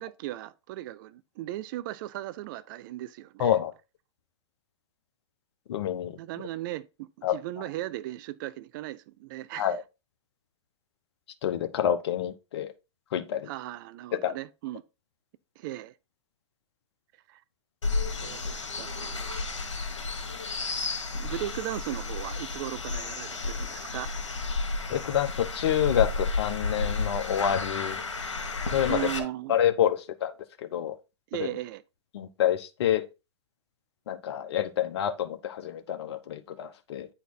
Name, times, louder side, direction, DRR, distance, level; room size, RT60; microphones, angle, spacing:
voice 1, 0.0-3.5 6.2-9.7 13.5-14.8 15.6-15.9 17.3-17.4 18.2-19.4 21.1-24.1 28.9-29.5 31.3-31.8, right 15 dB, 45° right, 0.5 m, -37 dB
voice 2, 3.4-3.7 5.7-6.2 7.2-7.4 9.5-9.8 11.4-12.7 13.1-13.5 14.1-14.3 24.9-28.0 28.7-29.1 29.5-31.0 31.4-31.5 32.1-33.1 34.1-37.1, left 10 dB, 60° left, 1.0 m, -28 dB
sound 1, 17.8-29.2, left 3 dB, 85° left, 1.9 m, -32 dB
9.5 x 4.3 x 3.9 m
hypercardioid pair, 125°, 15 cm